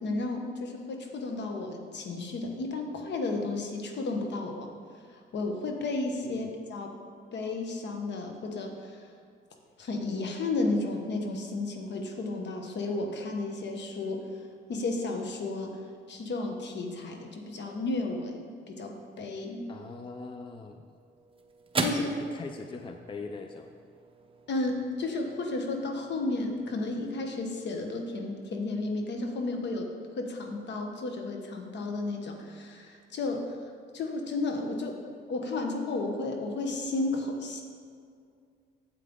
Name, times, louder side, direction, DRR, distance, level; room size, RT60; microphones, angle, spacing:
voice 1, 0.0-4.7 5.1-6.9 7.3-9.1 9.8-14.4 14.7-15.8 16.1-19.7 21.8-22.1 24.5-29.9 30.2-33.6 33.9-35.0 35.3-37.6, left 2 dB, 60° left, 3 dB, 1.2 m, -33 dB
voice 2, 19.7-20.9 21.9-23.7, left 3 dB, 25° left, 5 dB, 0.5 m, -41 dB
sound 1, 20.5-29.0, right 3 dB, 25° right, 0.8 m, -40 dB
8.8 x 7.5 x 3.8 m, 2.3 s
cardioid pair, 90°, 20 cm